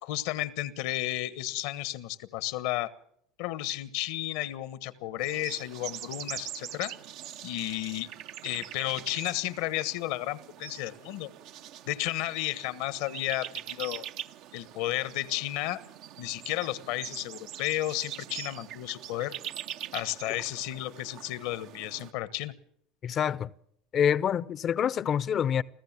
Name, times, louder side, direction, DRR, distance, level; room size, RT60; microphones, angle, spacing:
voice 1, 0.0-2.9 3.4-6.9 7.4-8.1 8.4-11.3 11.9-14.0 14.5-15.8 16.2-19.3 19.9-22.5, left 15 dB, 70° left, 1.3 m, -33 dB
sound 1, 5.2-22.1, right 11 dB, 65° right, 0.8 m, -43 dB
voice 2, 23.0-23.5 23.9-25.6, left 8 dB, 40° left, 0.7 m, -26 dB
26.0 x 14.5 x 7.5 m
hypercardioid pair, 90°, 0 cm